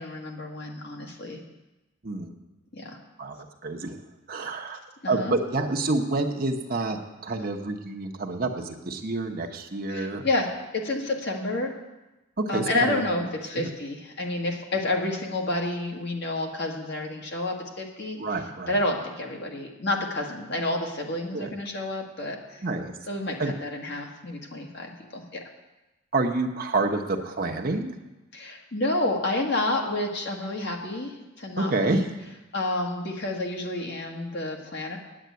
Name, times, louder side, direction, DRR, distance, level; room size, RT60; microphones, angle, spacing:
voice 1, 0.0-1.4 2.7-3.0 5.0-5.3 9.9-11.7 12.5-18.2 18.7-22.6 23.1-25.4 28.3-32.0 32.5-35.0, left 2 dB, 55° left, 1 dB, 1.6 m, -29 dB
voice 2, 2.0-2.4 3.2-4.0 4.3-4.8 5.1-10.2 12.4-13.0 13.5-13.7 18.2-18.8 21.3-21.5 22.6-22.9 23.4-23.5 26.1-28.0 31.6-32.0, right 2 dB, 45° right, 3 dB, 1.0 m, -28 dB
9.0 x 8.0 x 9.4 m, 1.1 s
head